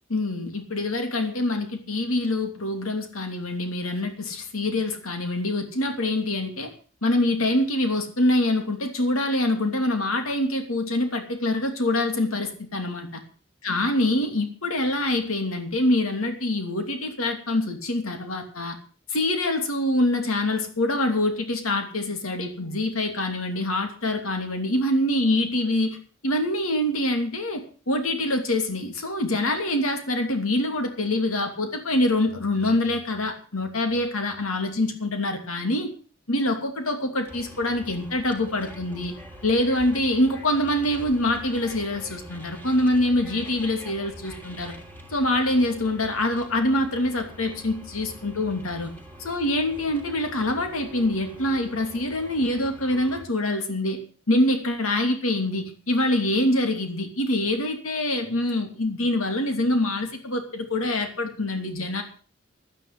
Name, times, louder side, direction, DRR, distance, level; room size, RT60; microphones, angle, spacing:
voice 1, 0.1-6.7 7.0-13.2 13.6-18.8 19.1-26.0 26.2-35.9 36.3-39.1 39.4-44.7 45.1-48.9 49.2-54.0 54.3-62.0, left 1 dB, 90° left, 5 dB, 2.9 m, -25 dB
sound 1, 37.3-53.3, equal, 10° left, 3.0 m, -44 dB
12.0 x 10.0 x 7.7 m, 0.41 s
head